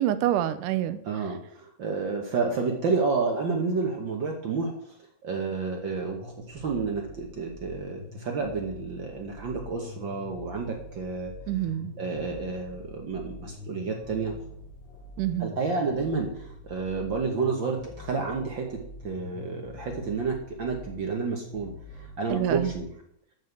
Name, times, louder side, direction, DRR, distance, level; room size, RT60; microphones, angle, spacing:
voice 1, 0.0-1.0 11.5-11.9 15.2-15.5 22.3-22.7, right 12 dB, 85° right, 12 dB, 2.2 m, -26 dB
voice 2, 1.0-4.7 5.2-11.3 12.0-14.3 15.4-18.8 19.0-21.7 22.2-22.9, right 4 dB, 60° right, 2 dB, 1.3 m, -30 dB
sound 1, 5.9-22.8, left 2 dB, 25° left, 2.3 m, -45 dB
7.3 x 6.3 x 7.9 m, 0.74 s
omnidirectional pair, 3.6 m